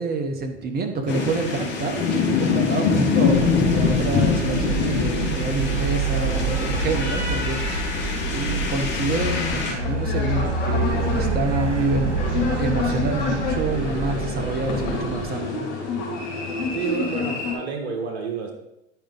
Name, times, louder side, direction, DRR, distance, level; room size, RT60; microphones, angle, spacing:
voice 1, 0.0-2.0 2.4-7.9 8.3-12.2 12.6-15.7, right 3 dB, 25° right, 5 dB, 1.2 m, -27 dB
sound 1, 1.1-9.7, left 5 dB, 30° left, 2.3 m, -24 dB
sound 2, 3.2-15.3, right 3 dB, 80° right, 1.6 m, -27 dB
sound 3, 9.7-17.5, left 4 dB, 50° left, 2.8 m, -29 dB
voice 2, 16.7-18.5, right 6 dB, 60° right, 2 dB, 1.5 m, -29 dB
10.5 x 5.0 x 3.9 m, 0.88 s
figure-of-eight pair, 90°, 35 cm